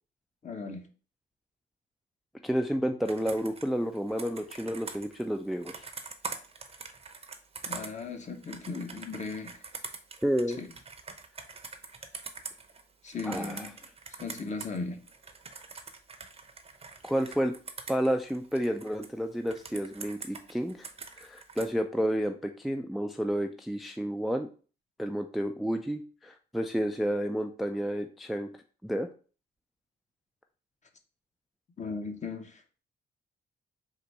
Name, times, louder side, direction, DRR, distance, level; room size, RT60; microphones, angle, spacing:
voice 1, 0.4-0.9 7.7-9.6 10.6-10.7 13.0-13.7 14.2-15.0 31.8-32.6, left 4 dB, 35° left, 0.9 m, -37 dB
voice 2, 2.4-5.9 10.2-10.6 13.2-13.7 17.0-17.5 17.9-20.9 21.2-24.5 25.0-28.5 28.8-29.1, equal, ahead, 0.4 m, -30 dB
Computer keyboard, 3.1-14.8 15.1-19.1 19.5-21.7, right 4 dB, 30° right, 0.7 m, -44 dB
3.9 x 2.6 x 4.5 m
cardioid pair, 90°, 20 cm